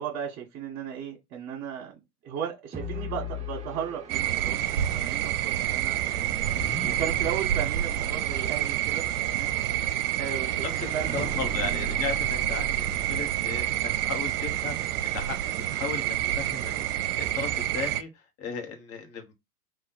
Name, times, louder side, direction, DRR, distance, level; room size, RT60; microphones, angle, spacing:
voice 1, 0.0-1.9 2.2-6.6 7.0-9.5 10.2-11.3, right 8 dB, 40° right, 1.7 m, -36 dB
sound 1, 2.7-14.0, right 1 dB, 15° right, 0.8 m, -39 dB
sound 2, 4.1-18.0, right 12 dB, 70° right, 0.7 m, -28 dB
voice 2, 11.1-19.3, left 5 dB, 30° left, 1.5 m, -36 dB
3.7 x 2.7 x 4.2 m
hypercardioid pair, 110°, 46 cm